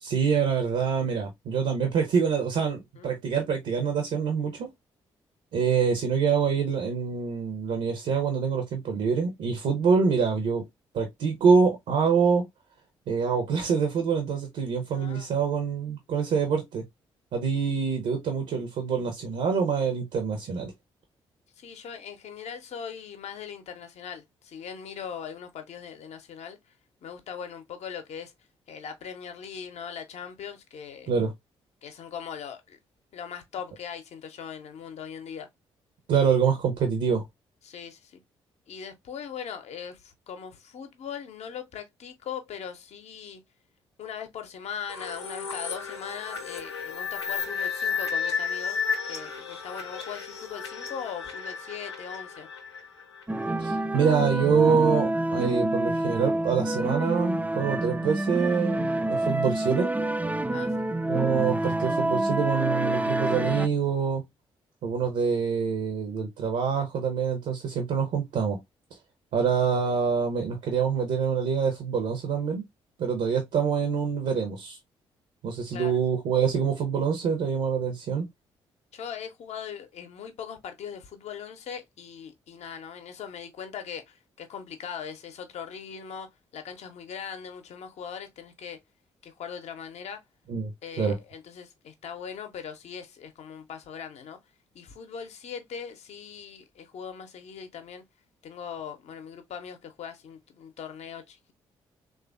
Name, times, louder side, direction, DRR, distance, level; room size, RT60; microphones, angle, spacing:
voice 1, 0.0-4.7 5.5-10.7 10.9-12.5 13.1-16.8 17.3-20.7 31.1-31.3 36.1-37.2 53.6-59.9 61.1-64.2 64.8-68.6 69.3-72.6 73.0-74.8 75.4-78.3 90.5-90.7 91.0-91.2, right 6 dB, 60° right, 0.7 m, -25 dB
voice 2, 14.9-15.3 21.6-26.7 27.0-28.3 28.7-31.1 31.8-32.8 33.1-35.5 37.6-38.2 38.7-43.4 44.0-52.5 58.9-59.1 60.5-60.8 73.3-73.4 75.7-76.0 78.9-88.8 89.2-90.2 90.8-94.4 94.7-98.0 98.4-101.5, left 7 dB, 55° left, 0.7 m, -40 dB
sound 1, 44.9-53.5, left 6 dB, 90° left, 0.4 m, -33 dB
sound 2, 53.3-63.7, right 1 dB, 10° right, 0.3 m, -27 dB
3.2 x 2.4 x 2.3 m
figure-of-eight pair, 40°, 14 cm